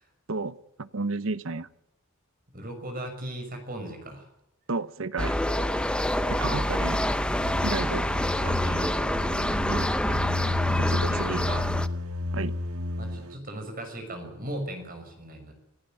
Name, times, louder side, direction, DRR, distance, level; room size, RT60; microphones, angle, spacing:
voice 1, 0.3-1.7 4.7-5.4 6.3-7.0 7.6-8.0 9.7-9.9 10.8-11.4 12.3-12.6, right 3 dB, 65° right, 15 dB, 0.9 m, -32 dB
voice 2, 2.5-4.3 6.4-7.2 8.4-9.1 10.6-11.7 13.0-15.5, right 1 dB, 40° right, 5 dB, 6.3 m, -38 dB
sound 1, 5.2-11.9, left 1 dB, 5° left, 0.8 m, -27 dB
sound 2, 7.4-13.3, left 2 dB, 85° right, 1.6 m, -31 dB
26.0 x 15.5 x 9.1 m, 0.85 s
head